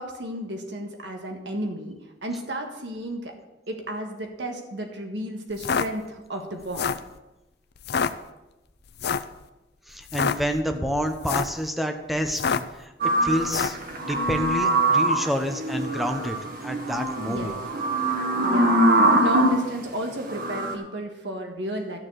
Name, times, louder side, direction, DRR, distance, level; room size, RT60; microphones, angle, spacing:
voice 1, 0.0-3.3 3.7-6.9 17.3-17.5 18.4-22.0, right 1 dB, 75° right, 3 dB, 1.6 m, -33 dB
sound 1, 5.5-5.9 6.6-7.1 7.8-8.1 9.0-9.3 10.0-10.4 11.1-11.6 12.3-12.8 13.5-13.8, left 6 dB, 65° left, 0.5 m, -26 dB
voice 2, 9.9-12.9 13.2-13.8 14.1-16.4 16.6-17.5, equal, ahead, 6 dB, 1.0 m, -28 dB
sound 2, 13.0-19.6 20.3-20.7, right 1 dB, 55° right, 1.6 m, -23 dB
12.5 x 7.2 x 6.3 m, 1.0 s
head